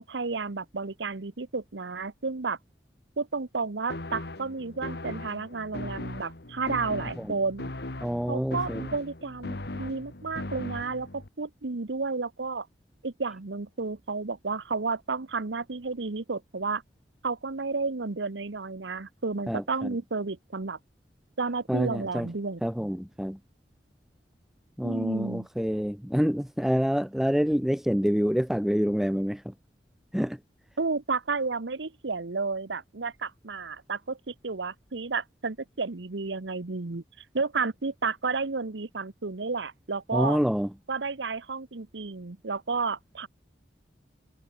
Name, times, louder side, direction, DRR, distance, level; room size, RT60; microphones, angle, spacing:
voice 1, 0.0-2.6 3.2-7.7 8.3-12.7 13.0-16.8 17.2-20.8 21.4-22.9 24.8-25.5 30.8-37.0 37.3-40.4 40.9-43.3, right 4 dB, 85° right, 1.0 m, -32 dB
sound 1, 3.9-11.3, left 1 dB, 65° left, 1.9 m, -38 dB
voice 2, 8.0-8.8 19.5-19.9 21.7-22.3 22.6-23.4 24.8-29.5 30.1-30.4 40.1-40.7, equal, ahead, 0.5 m, -27 dB
head